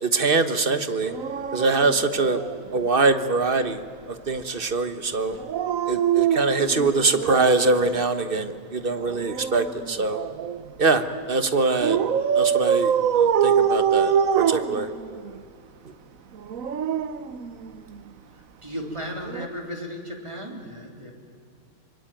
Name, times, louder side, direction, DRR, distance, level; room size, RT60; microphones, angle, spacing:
voice 1, 0.0-1.1 1.5-2.4 2.7-3.8 4.1-5.4 5.9-10.2 10.8-12.0 12.3-14.9, right 3 dB, 40° right, 10 dB, 1.4 m, -23 dB
Dog, 1.0-2.9 5.3-7.7 9.0-10.7 11.8-15.4 16.3-18.0 19.3-19.5, right 8 dB, 75° right, 1.3 m, -25 dB
voice 2, 18.6-21.1, equal, 20° right, 2 dB, 3.6 m, -35 dB
25.0 x 23.0 x 9.1 m, 2.4 s
omnidirectional pair, 1.4 m